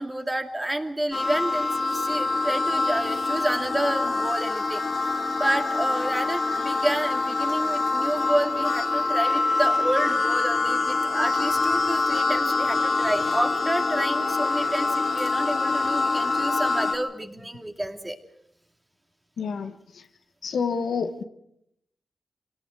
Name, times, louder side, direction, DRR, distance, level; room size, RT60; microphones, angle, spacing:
voice 1, 0.0-18.2, right 1 dB, 20° right, 5 dB, 2.5 m, -29 dB
sound 1, 1.1-16.9, left 3 dB, 70° left, 3.0 m, -25 dB
voice 2, 19.4-20.1 20.4-21.2, left 5 dB, 90° left, 7 dB, 1.6 m, -29 dB
25.0 x 18.0 x 6.4 m, 0.75 s
cardioid pair, 60°, 0 cm